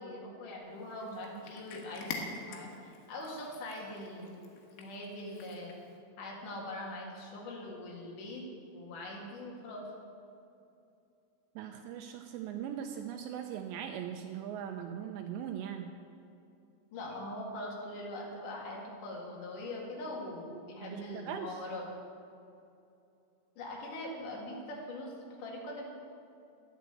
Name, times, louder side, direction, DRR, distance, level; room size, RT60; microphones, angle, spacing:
voice 1, 0.0-4.4 4.8-5.8 6.2-9.8 16.9-21.9 23.6-25.8, left 1 dB, 55° left, -2 dB, 2.8 m, -42 dB
Cat, 0.8-6.0, left 5 dB, 75° left, 3.6 m, -46 dB
voice 2, 11.6-16.0 20.8-21.6, right 9 dB, 85° right, 5 dB, 2.5 m, -40 dB
10.0 x 7.7 x 8.3 m, 2.7 s
omnidirectional pair, 5.7 m